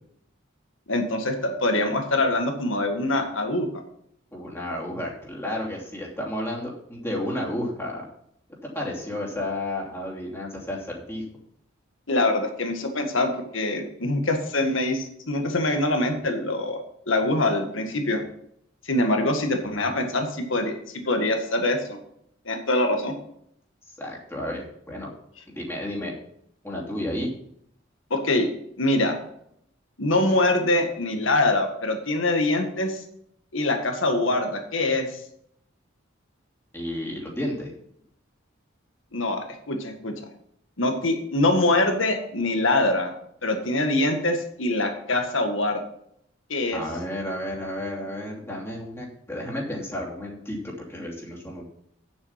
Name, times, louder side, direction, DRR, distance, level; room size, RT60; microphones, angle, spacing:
voice 1, 0.9-3.7 12.1-18.2 18.9-22.0 22.5-23.1 28.1-28.5 28.8-29.2 30.0-33.0 33.5-35.2 39.1-40.1 40.8-43.1 43.4-45.8 46.5-46.8, left 2 dB, 70° left, 4 dB, 1.8 m, -24 dB
voice 2, 4.3-8.0 8.7-11.2 24.0-25.1 25.5-26.1 26.6-27.3 36.7-37.7 46.7-51.7, left 1 dB, 15° left, -3 dB, 2.9 m, -32 dB
9.6 x 7.3 x 5.8 m, 0.71 s
head